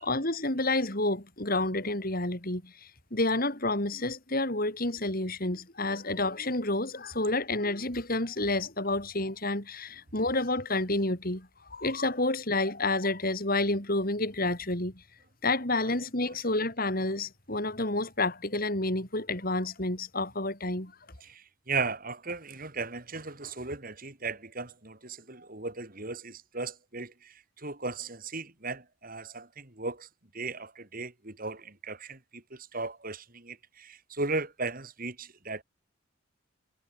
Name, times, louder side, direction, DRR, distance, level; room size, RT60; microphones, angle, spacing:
voice 1, 0.0-2.7 3.1-14.9 15.4-20.9, left 2 dB, 45° left, 4.2 m, -29 dB
voice 2, 21.2-30.1 30.3-35.6, right 3 dB, 40° right, 3.3 m, -36 dB
head